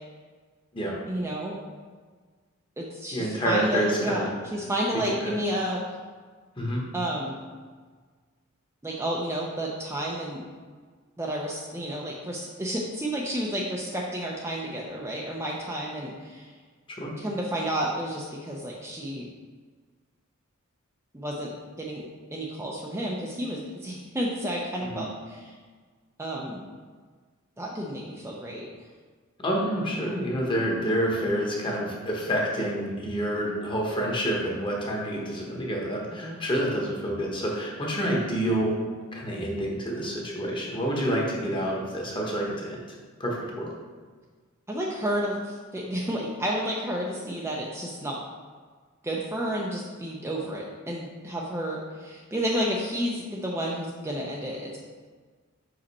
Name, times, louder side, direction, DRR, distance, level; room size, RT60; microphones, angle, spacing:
voice 1, 1.1-1.6 2.8-5.8 6.9-7.4 8.8-10.4 11.2-16.5 17.2-19.3 21.1-21.5 21.8-25.6 26.2-26.6 27.6-28.7 30.0-30.3 36.1-36.4 44.7-48.2 49.0-54.8, equal, 10° right, -3 dB, 0.5 m, -31 dB
voice 2, 3.1-4.3 5.0-5.3 6.6-6.8 16.9-17.1 24.9-25.0 29.4-38.8 39.1-42.8 43.2-43.7, equal, 25° left, -2 dB, 1.2 m, -28 dB
5.6 x 5.1 x 4.2 m, 1.5 s
head